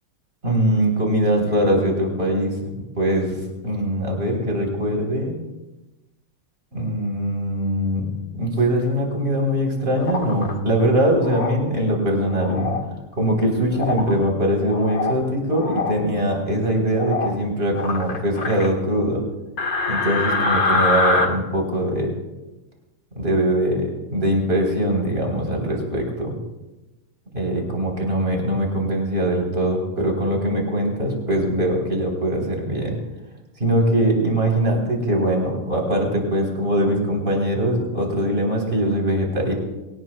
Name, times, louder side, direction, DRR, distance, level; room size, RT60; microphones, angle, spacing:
voice 1, 0.4-2.6 3.0-5.3 6.7-8.1 8.3-12.8 13.2-19.2 19.9-22.2 23.2-26.3 27.3-33.0 33.6-39.5, right 1 dB, 25° right, 0 dB, 3.7 m, -22 dB
sound 1, 10.0-10.5 11.2-11.6 12.3-12.8 13.7-14.1 14.6-15.2 15.5-15.9 16.9-17.4 17.7-18.7 19.6-21.3, left 3 dB, 45° left, 1.7 m, -24 dB
23.0 x 18.0 x 2.2 m, 1.0 s
omnidirectional pair, 2.3 m